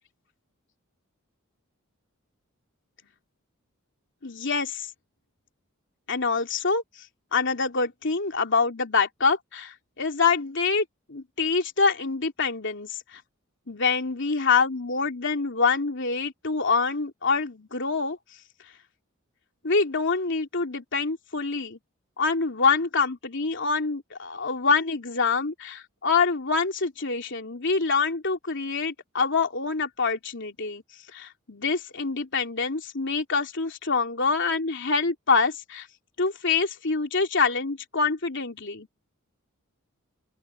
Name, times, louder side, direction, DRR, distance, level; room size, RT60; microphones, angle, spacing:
voice 1, 4.2-4.9 6.1-6.8 7.3-13.2 13.7-18.2 19.6-21.8 22.2-30.8 31.1-35.9 36.2-38.9, left 4 dB, 60° left, 3.1 m, -26 dB
open air
head